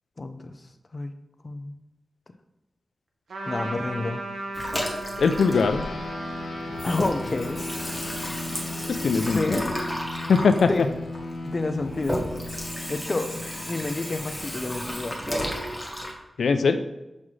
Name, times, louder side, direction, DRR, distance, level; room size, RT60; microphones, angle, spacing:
voice 1, 0.2-0.5 0.9-1.1 1.4-1.7 3.5-4.2 6.8-7.6 9.3-9.6 10.7-10.9 11.4-12.2 12.9-15.2, left 2 dB, 40° left, 8 dB, 0.5 m, -29 dB
Trumpet, 3.3-9.2, right 2 dB, 85° right, 0.9 m, -37 dB
Water tap faucet / Sink (filling or washing), 4.5-6.3 6.6-16.1, equal, ahead, 1.2 m, -33 dB
voice 2, 5.2-5.8 9.0-9.7 10.3-10.7 16.4-16.8, left 5 dB, 90° left, 8 dB, 0.4 m, -21 dB
sound 1, 5.5-15.3, left 2 dB, 75° left, 1.0 m, -37 dB
6.1 x 5.6 x 3.2 m, 0.99 s
wide cardioid pair, 90°, 0 cm